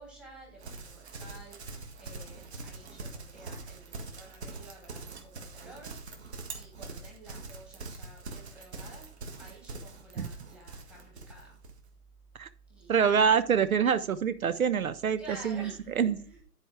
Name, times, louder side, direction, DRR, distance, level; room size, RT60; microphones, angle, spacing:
voice 1, 0.0-1.6 2.0-5.9 6.5-9.1 9.4-11.5 12.7-13.4 15.2-16.4, right 2 dB, ahead, -4 dB, 1.5 m, -50 dB
Livestock farm animals working animals, 0.6-11.8, right 3 dB, 45° right, 1.7 m, -43 dB
voice 2, 12.9-15.6 16.0-16.1, right 7 dB, 65° right, 13 dB, 0.6 m, -25 dB
10.5 x 4.9 x 4.6 m, 0.42 s
figure-of-eight pair, 155°, 46 cm